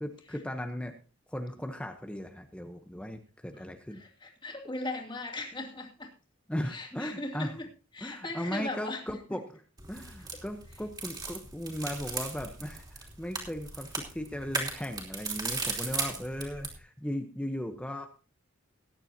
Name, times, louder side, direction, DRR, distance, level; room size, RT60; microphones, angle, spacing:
voice 1, 0.0-0.9 1.3-4.0 6.5-7.5 8.0-9.6 9.9-18.1, equal, 5° left, 5 dB, 0.9 m, -37 dB
voice 2, 4.0-6.1 6.7-7.7 7.9-9.2, left 2 dB, 25° left, 0 dB, 2.7 m, -38 dB
sound 1, 9.8-16.8, right 3 dB, 20° right, 3.2 m, -37 dB
19.5 x 9.9 x 2.9 m, 0.36 s
head